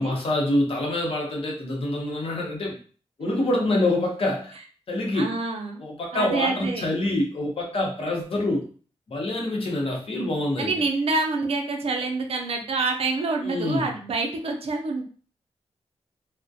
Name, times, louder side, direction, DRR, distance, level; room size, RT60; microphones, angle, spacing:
voice 1, 0.0-2.8 3.2-4.6 4.9-5.4 5.8-8.7 9.1-10.8 13.4-13.9, left 1 dB, 60° left, -1 dB, 0.7 m, -26 dB
voice 2, 5.1-5.8 6.1-6.8 10.6-15.0, right 3 dB, 65° right, 3 dB, 0.5 m, -27 dB
2.3 x 2.1 x 2.6 m, 0.41 s
wide cardioid pair, 135°, 11 cm